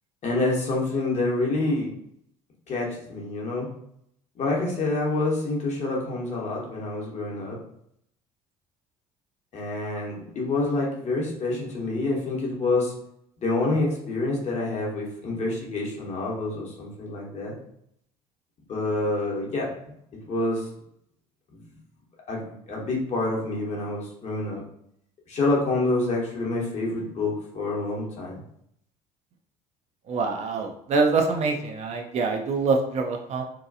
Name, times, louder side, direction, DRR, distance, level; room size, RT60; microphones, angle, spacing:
voice 1, 0.2-1.9 2.7-3.7 4.4-7.6 9.5-12.9 13.4-17.5 18.7-19.7 20.3-20.7 21.5-21.6 22.3-24.6 25.3-28.4, left 2 dB, 40° left, -2 dB, 0.9 m, -27 dB
voice 2, 30.1-33.4, right 4 dB, 40° right, 3 dB, 0.4 m, -25 dB
2.8 x 2.2 x 2.5 m, 0.72 s
figure-of-eight pair, 60°, 19 cm